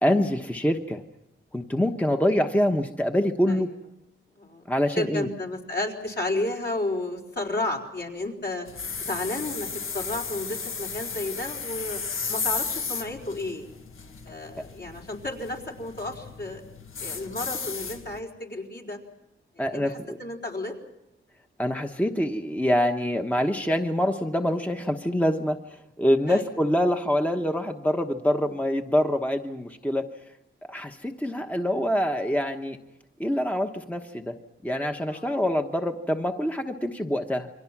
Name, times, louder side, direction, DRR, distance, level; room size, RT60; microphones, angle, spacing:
voice 1, 0.0-1.0 1.5-3.7 4.7-5.3 19.6-20.2 21.6-30.0 30.6-32.8 33.2-34.3 34.6-37.5, equal, 5° left, 4 dB, 1.0 m, -25 dB
voice 2, 4.9-8.7 9.0-9.7 9.9-12.0 12.3-13.7 14.2-16.6 17.0-19.0 19.7-20.7 26.3-26.6 28.4-28.5 35.1-35.3, left 2 dB, 55° left, 0 dB, 4.4 m, -32 dB
sound 1, 8.7-18.2, left 5 dB, 80° left, 1.7 m, -34 dB
28.5 x 24.0 x 6.0 m, 0.90 s
wide cardioid pair, 130°, 21 cm